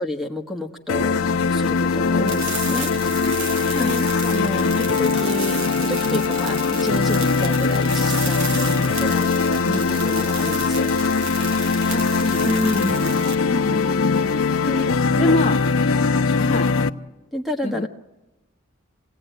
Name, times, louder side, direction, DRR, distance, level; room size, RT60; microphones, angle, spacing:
voice 1, 0.0-3.4 3.8-11.4 12.4-13.3 14.6-15.3 17.3-17.9, left 1 dB, ahead, 3 dB, 1.4 m, -30 dB
sound 1, 0.9-16.9, left 4 dB, 85° left, 0.8 m, -21 dB
sound 2, 2.3-13.3, right 4 dB, 85° right, 2.6 m, -33 dB
voice 2, 3.7-4.0 11.9-13.1 13.5-14.5 15.2-15.6 16.4-16.7 17.6-17.9, left 2 dB, 30° left, 2 dB, 0.8 m, -26 dB
26.5 x 17.5 x 9.3 m, 1.1 s
head